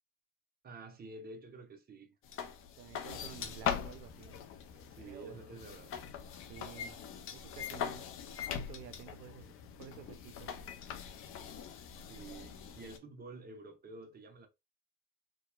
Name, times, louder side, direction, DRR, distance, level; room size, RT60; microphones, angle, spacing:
voice 1, 0.6-2.2 4.9-6.0 12.1-14.5, right 2 dB, 20° right, 0.8 m, -50 dB
sound 1, 2.2-13.0, left 8 dB, 30° left, 0.4 m, -42 dB
voice 2, 2.8-4.4 4.9-5.5 6.5-7.0 7.3-8.1 8.5-10.5, right 10 dB, 85° right, 0.6 m, -52 dB
2.8 x 2.3 x 2.2 m
hypercardioid pair, 90°, 49 cm